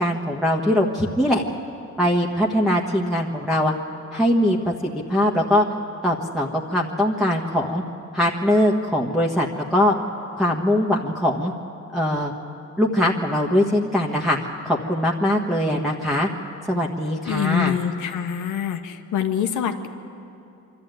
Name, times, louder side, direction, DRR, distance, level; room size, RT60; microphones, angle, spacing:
voice 1, 0.0-1.4 2.0-3.7 4.1-5.7 6.0-7.8 8.1-9.9 10.4-11.5 11.9-12.3 12.8-14.4 14.6-16.3 16.7-17.8, left 1 dB, ahead, -4 dB, 1.5 m, -21 dB
voice 2, 17.3-19.9, left 9 dB, 85° left, 6 dB, 1.4 m, -25 dB
24.0 x 13.0 x 9.3 m, 2.7 s
cardioid pair, 90°, 30 cm